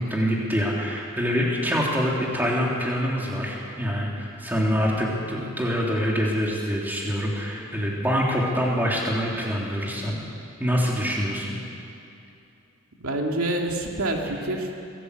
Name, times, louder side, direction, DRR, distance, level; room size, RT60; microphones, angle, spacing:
voice 1, 0.0-10.2 10.6-11.6, equal, 10° right, -3 dB, 3.4 m, -25 dB
voice 2, 13.0-14.8, right 1 dB, 85° right, 1 dB, 2.6 m, -27 dB
24.5 x 17.0 x 8.3 m, 2.6 s
head